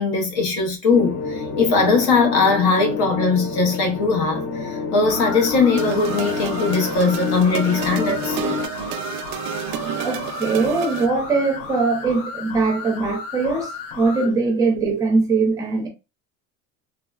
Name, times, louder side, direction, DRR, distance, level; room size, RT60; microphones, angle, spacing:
voice 1, 0.0-8.4, left 4 dB, 55° left, 0.8 m, -20 dB
sound 1, 0.9-8.7, left 5 dB, 40° left, 0.4 m, -29 dB
sound 2, 5.0-14.3, left 5 dB, 90° left, 0.7 m, -34 dB
sound 3, 5.8-11.1, right 9 dB, 60° right, 0.4 m, -30 dB
voice 2, 10.0-15.9, right 3 dB, 10° right, 0.6 m, -21 dB
3.3 x 2.0 x 2.3 m
cardioid pair, 155°, 35 cm